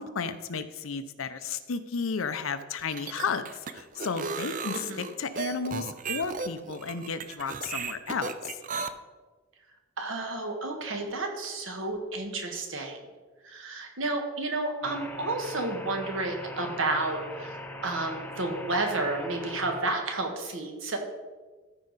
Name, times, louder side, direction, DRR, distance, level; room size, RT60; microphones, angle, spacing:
voice 1, 0.0-8.5, left 5 dB, 85° left, 11 dB, 0.6 m, -33 dB
sound 1, 2.8-8.9, right 5 dB, 40° right, 0.4 m, -35 dB
voice 2, 4.7-5.0 10.0-13.0 13.4-21.0, right 2 dB, 75° right, 3 dB, 1.4 m, -31 dB
sound 2, 14.8-19.8, left 1 dB, 10° left, 0.6 m, -41 dB
13.5 x 4.9 x 4.0 m, 1.3 s
head